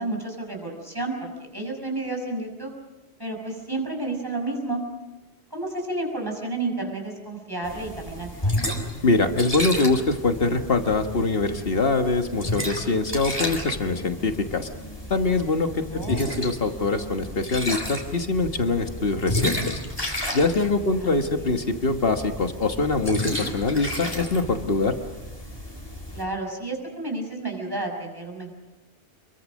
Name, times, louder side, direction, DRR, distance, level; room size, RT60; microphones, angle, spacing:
voice 1, 0.0-2.7 3.2-4.8 5.5-8.5 15.9-16.2 20.9-21.6 26.1-28.5, right 2 dB, 20° right, 1 dB, 5.9 m, -31 dB
sound 1, 7.6-26.2, left 1 dB, 20° left, 3.9 m, -32 dB
voice 2, 9.0-14.7 15.1-19.8 20.3-24.9, left 3 dB, 60° left, 6 dB, 1.6 m, -23 dB
27.5 x 23.0 x 6.4 m, 1.1 s
omnidirectional pair, 1.1 m